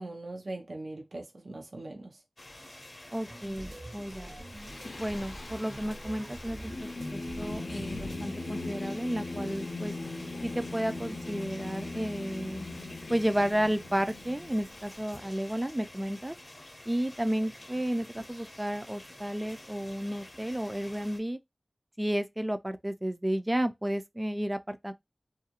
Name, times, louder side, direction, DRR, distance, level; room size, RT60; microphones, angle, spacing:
voice 1, 0.0-2.2, right 2 dB, 85° right, 0.6 m, -41 dB
sound 1, 2.4-21.2, left 1 dB, 35° left, 0.6 m, -49 dB
voice 2, 3.1-4.4 5.0-9.9 10.4-12.7 13.1-16.4 16.9-21.4 22.0-24.9, equal, 20° right, 0.4 m, -32 dB
sound 2, 3.3-8.3, right 1 dB, 45° right, 0.7 m, -45 dB
Singing, 4.5-15.0, left 2 dB, 90° left, 0.5 m, -40 dB
2.6 x 2.4 x 2.8 m
wide cardioid pair, 50°, 0 cm